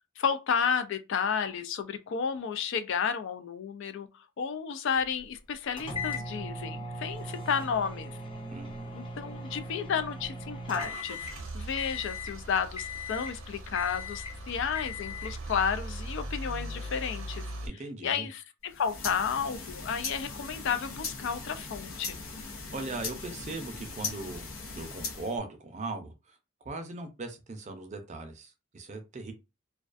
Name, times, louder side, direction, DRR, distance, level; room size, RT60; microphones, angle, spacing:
voice 1, 0.2-8.1 8.9-11.2 11.5-17.4 18.0-22.2, left 6 dB, 60° left, 0.4 m, -32 dB
sound 1, 5.8-11.4 11.8-12.4 12.8-13.4 13.8-14.4 14.8-15.4, left 2 dB, 25° left, 0.7 m, -38 dB
Car / Engine starting / Idling, 9.8-17.7, right 1 dB, 85° right, 0.6 m, -40 dB
voice 2, 17.6-18.3 22.7-24.5 24.7-26.4 26.6-29.3, right 3 dB, 35° right, 0.5 m, -39 dB
sound 2, 18.7-25.4, left 4 dB, 90° left, 0.7 m, -39 dB
2.3 x 2.2 x 2.4 m
head